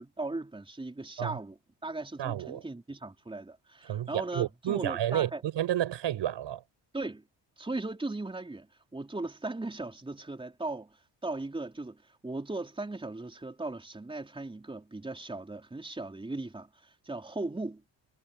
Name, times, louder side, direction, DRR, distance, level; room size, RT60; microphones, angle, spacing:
voice 1, 0.0-5.4 6.9-7.2 7.6-17.8, right 2 dB, 10° right, 4.2 m, -38 dB
voice 2, 2.2-2.6 3.9-6.6, right 12 dB, 75° right, 7.0 m, -31 dB
cardioid pair, 140°, 44 cm